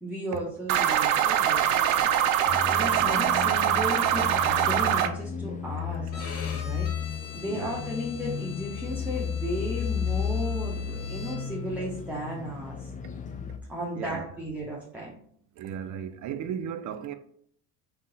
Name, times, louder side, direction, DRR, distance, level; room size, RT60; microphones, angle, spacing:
voice 1, 0.0-2.1 2.7-6.9 7.3-12.9 13.7-15.2 16.5-16.6, equal, 5° right, 0.9 m, -35 dB
sound 1, 0.7-5.1, right 10 dB, 90° right, 0.5 m, -23 dB
sound 2, 2.5-13.6, left 7 dB, 20° left, 0.3 m, -33 dB
Bowed string instrument, 6.1-11.7, left 6 dB, 75° left, 1.0 m, -44 dB
voice 2, 7.5-7.8 13.9-14.3 15.6-17.1, right 8 dB, 45° right, 0.5 m, -35 dB
3.6 x 2.9 x 4.0 m
supercardioid pair, 90°, 41 cm